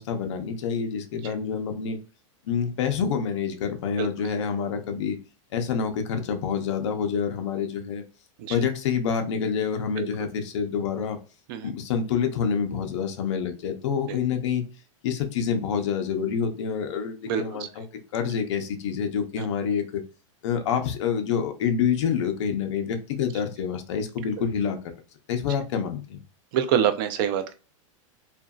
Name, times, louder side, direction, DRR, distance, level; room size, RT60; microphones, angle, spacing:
voice 1, 0.0-2.0 2.5-5.2 5.5-8.0 8.5-11.2 11.6-14.6 15.0-17.8 18.1-20.0 20.4-24.8 25.3-26.2, left 7 dB, 60° left, 6 dB, 0.6 m, -27 dB
voice 2, 17.3-17.7 19.4-19.5 24.3-24.5 26.5-27.5, right 9 dB, 40° right, 9 dB, 0.4 m, -26 dB
2.8 x 2.5 x 2.3 m, 0.34 s
supercardioid pair, 155°, 17 cm